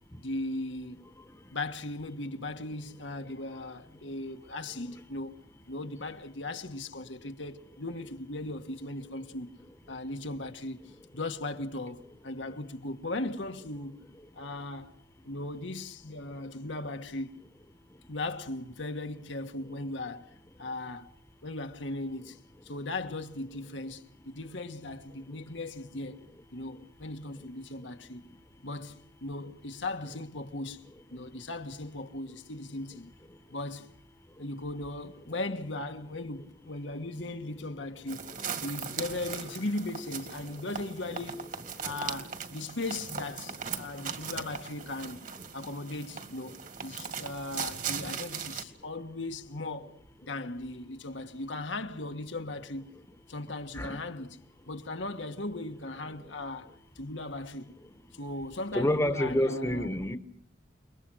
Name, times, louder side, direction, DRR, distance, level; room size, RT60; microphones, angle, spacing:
voice 1, 0.2-1.0 1.5-5.4 5.7-9.5 9.9-14.0 14.3-15.0 15.2-17.4 18.1-20.3 20.6-21.1 21.4-26.2 26.5-28.2 28.6-30.8 31.1-33.1 33.5-33.9 34.4-38.2 38.6-45.2 45.5-52.9 53.3-54.4 54.6-57.7 58.1-60.0, left 2 dB, 75° left, 1.6 m, -38 dB
sound 1, 38.1-48.6, right 6 dB, 45° right, 2.1 m, -39 dB
voice 2, 58.7-60.2, left 1 dB, 15° left, 1.2 m, -28 dB
30.0 x 21.5 x 6.3 m
head